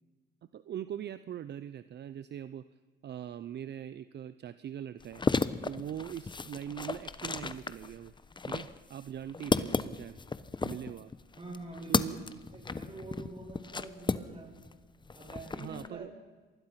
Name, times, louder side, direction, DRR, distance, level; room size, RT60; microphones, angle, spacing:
voice 1, 0.5-2.7 3.0-5.2 5.6-8.1 8.4-10.2 10.6-11.1 11.9-12.2 15.6-16.1, right 10 dB, 60° right, 14 dB, 0.8 m, -41 dB
sound 1, 5.0-14.7 15.0-15.9, left 4 dB, 25° left, 1.0 m, -34 dB
voice 2, 11.3-14.6 15.1-16.1, right 2 dB, 30° right, 1 dB, 7.8 m, -46 dB
26.0 x 20.0 x 5.9 m, 1.4 s
cardioid pair, 90°, 20 cm